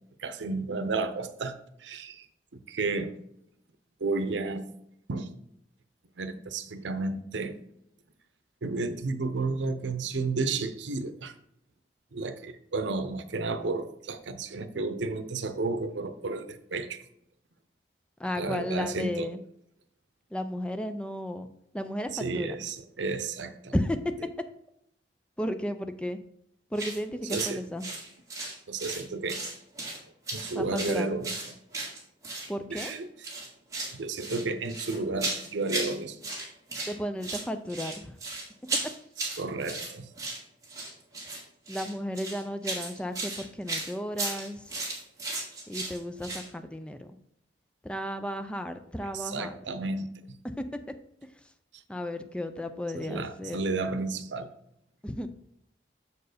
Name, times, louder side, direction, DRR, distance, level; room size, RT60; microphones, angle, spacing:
voice 1, 0.2-2.3 2.5-3.2 4.0-4.7 5.1-5.3 6.2-7.6 8.6-11.3 12.1-17.0 18.4-19.3 22.1-23.7 27.3-27.6 28.7-29.4 30.3-31.4 32.7-33.1 33.9-36.2 39.2-40.1 49.1-50.1 52.9-54.5, right 3 dB, 85° right, 11 dB, 0.7 m, -32 dB
voice 2, 18.2-19.4 20.3-21.5 21.7-22.6 23.7-24.1 25.4-26.2 26.7-27.9 30.5-31.2 32.5-32.9 36.9-38.2 41.7-44.7 45.7-47.1 47.8-49.6 50.4-50.6 51.9-53.6 55.0-55.3, equal, 5° left, 8 dB, 0.4 m, -33 dB
sound 1, 26.7-27.0 27.3-27.5 27.8-29.0 29.3-30.0 30.3-32.5 32.7-33.0 33.2-33.9 34.2-35.9 36.2-36.9 37.2-46.5, right 2 dB, 20° right, 1.8 m, -35 dB
6.7 x 4.5 x 5.0 m, 0.75 s
head